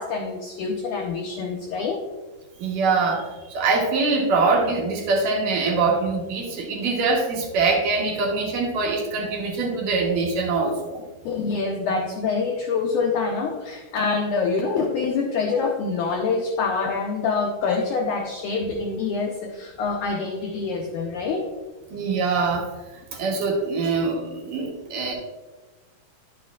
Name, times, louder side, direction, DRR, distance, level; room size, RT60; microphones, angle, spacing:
voice 1, 0.0-2.0 11.2-21.4, left 4 dB, 80° left, 0 dB, 1.8 m, -26 dB
voice 2, 2.6-11.0 21.9-22.7 23.1-25.1, right 4 dB, 70° right, -1 dB, 2.5 m, -23 dB
10.5 x 7.1 x 2.4 m, 1.2 s
omnidirectional pair, 4.4 m